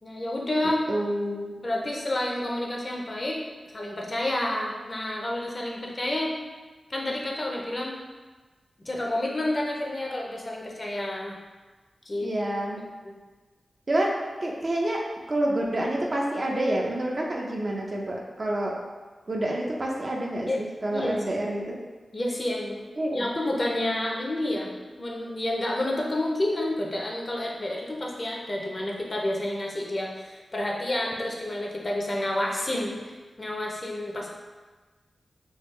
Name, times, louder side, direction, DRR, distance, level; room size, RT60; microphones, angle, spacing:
voice 1, 0.0-0.8 1.6-3.4 3.7-6.3 6.9-8.0 8.8-11.4 12.1-12.3 20.5-20.6 20.9-21.2 22.1-24.7 25.0-34.3, left 1 dB, 35° left, -1 dB, 0.5 m, -29 dB
voice 2, 0.9-1.5 12.2-12.8 13.9-14.1 14.4-15.0 15.3-18.7 19.3-21.8 23.0-23.3, right 1 dB, 45° right, -2 dB, 0.5 m, -28 dB
3.4 x 2.3 x 3.1 m, 1.3 s
wide cardioid pair, 80°, 0 cm